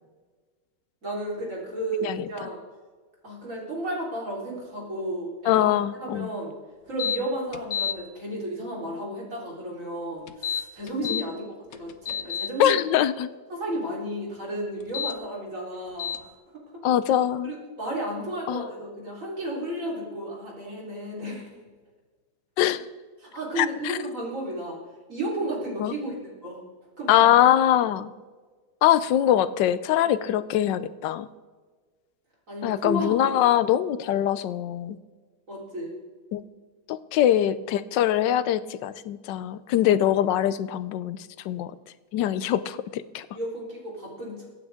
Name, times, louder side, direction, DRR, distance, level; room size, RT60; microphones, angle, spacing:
voice 1, 1.0-2.6 3.2-5.7 6.0-6.5 6.9-11.4 11.7-12.8 13.5-16.3 17.4-21.5 23.2-24.8 25.1-26.6 27.0-27.3 30.2-30.3 32.5-33.4 35.5-36.0 43.3-44.5, right 1 dB, 45° right, -4 dB, 4.1 m, -33 dB
voice 2, 5.5-6.3 11.1-11.2 12.6-13.3 16.8-17.5 18.5-18.7 22.6-22.9 23.6-24.0 25.8-25.9 27.1-28.1 28.8-31.3 32.6-35.0 36.3-36.4 36.9-41.2 41.4-41.7 42.1-43.3, left 11 dB, 90° left, 15 dB, 1.3 m, -23 dB
sound 1, 7.0-7.2 7.5-7.9 10.3-11.2 11.7-12.5 14.8-15.1 16.0-16.2, left 8 dB, 60° left, 1.1 m, -29 dB
23.5 x 9.2 x 3.5 m, 1.4 s
omnidirectional pair, 1.9 m